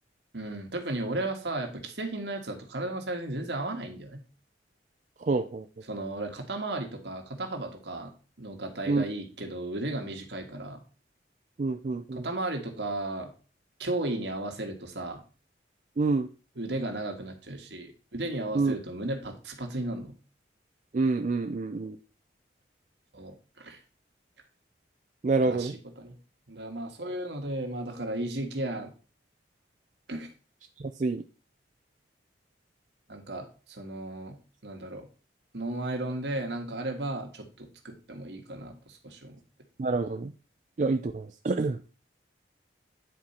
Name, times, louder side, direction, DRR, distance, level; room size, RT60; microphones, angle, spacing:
voice 1, 0.3-4.2 5.9-8.1 8.4-10.8 12.1-13.3 13.8-15.2 16.5-20.1 23.1-23.8 25.4-26.1 26.5-28.9 30.1-30.3 33.1-34.4 34.6-35.1 35.5-39.4, right 2 dB, 75° right, 4 dB, 1.6 m, -35 dB
voice 2, 5.2-5.7 8.9-9.0 11.6-12.3 16.0-16.3 18.5-18.7 20.9-22.0 25.2-25.7 31.0-31.2 39.8-40.3 40.8-41.8, right 3 dB, 40° right, 6 dB, 0.4 m, -27 dB
9.5 x 4.6 x 4.3 m, 0.36 s
head